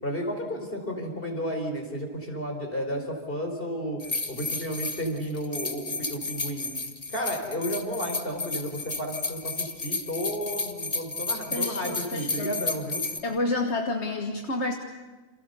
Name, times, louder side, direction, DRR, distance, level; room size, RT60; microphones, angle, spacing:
voice 1, 0.0-4.0 4.3-6.7 7.1-13.0, equal, 55° left, 3 dB, 4.8 m, -32 dB
sound 1, 4.0-13.2, left 3 dB, 35° left, 1.6 m, -32 dB
voice 2, 11.5-12.6 13.2-14.7, left 2 dB, 80° left, 4 dB, 1.9 m, -29 dB
29.0 x 27.5 x 6.9 m, 1.3 s
omnidirectional pair, 1.1 m